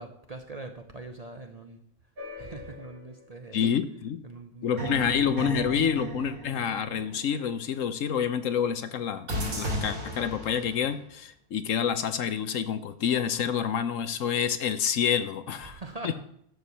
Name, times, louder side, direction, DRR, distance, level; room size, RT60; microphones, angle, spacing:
voice 1, 0.0-1.8 2.4-3.6 4.2-4.9 5.2-5.3 15.7-16.1, right 2 dB, 35° right, 5 dB, 0.7 m, -42 dB
sound 1, 2.2-3.2 4.8-7.4 9.3-11.0, right 1 dB, 75° right, 2.8 m, -35 dB
voice 2, 3.5-4.2 4.6-16.1, left 8 dB, 70° left, 11 dB, 1.1 m, -28 dB
12.5 x 4.7 x 6.9 m, 0.69 s
omnidirectional pair, 1.5 m